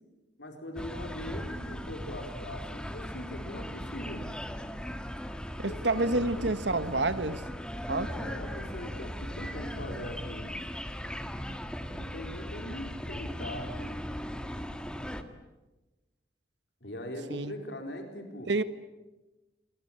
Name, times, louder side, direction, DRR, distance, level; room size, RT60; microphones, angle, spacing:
voice 1, 0.4-4.3 5.6-6.1 6.4-6.5 8.1-10.6 11.9-14.0 16.8-18.5, left 1 dB, 70° left, 4 dB, 4.3 m, -41 dB
sound 1, 0.8-15.2, equal, 5° left, 1.7 m, -38 dB
voice 2, 5.6-7.4 7.9-8.1 17.3-17.6 18.5-18.6, right 2 dB, 70° right, 12 dB, 1.5 m, -28 dB
28.5 x 22.0 x 9.0 m, 1.1 s
head